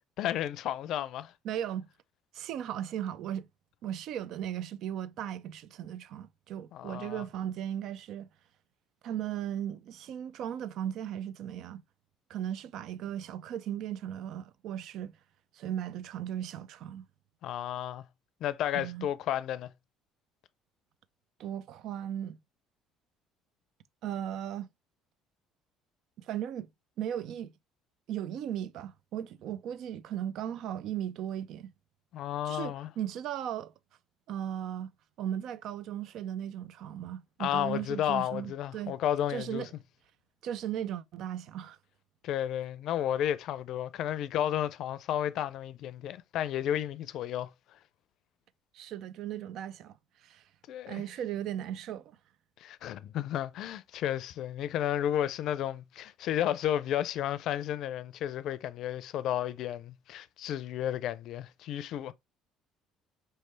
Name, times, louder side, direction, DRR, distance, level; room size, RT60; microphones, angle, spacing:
voice 1, 0.2-1.3 6.7-7.2 17.4-18.0 18.4-19.7 32.1-32.9 37.4-39.7 42.2-47.5 50.7-51.0 52.6-62.1, left 11 dB, 65° left, 0.4 m, -32 dB
voice 2, 1.4-1.9 2.3-3.5 3.8-8.3 9.0-11.8 12.3-15.2 15.5-17.1 18.7-19.1 21.4-22.4 24.0-24.7 26.2-26.7 27.0-27.5 28.1-31.7 32.4-33.7 34.3-34.9 35.2-39.0 39.3-39.7 40.4-41.8 48.7-50.4 50.9-52.2, right 10 dB, 65° right, 0.4 m, -37 dB
4.5 x 3.3 x 3.0 m
supercardioid pair, 80°, 0 cm